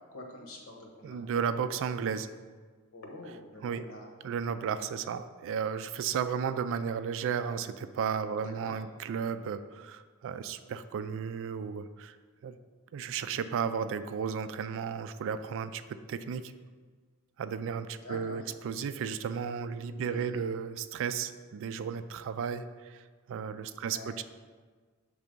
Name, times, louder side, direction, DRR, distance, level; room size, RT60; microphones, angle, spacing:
voice 1, 0.1-1.2 2.9-4.1 8.4-8.8 17.9-18.4 20.0-20.4 23.7-24.2, left 2 dB, 65° left, 1 dB, 1.2 m, -47 dB
voice 2, 1.0-2.3 3.6-3.8 4.2-12.2 12.4-12.6 12.9-15.8 16.1-16.5 17.4-24.2, right 7 dB, 60° right, 11 dB, 0.3 m, -34 dB
7.1 x 3.4 x 5.2 m, 1.5 s
head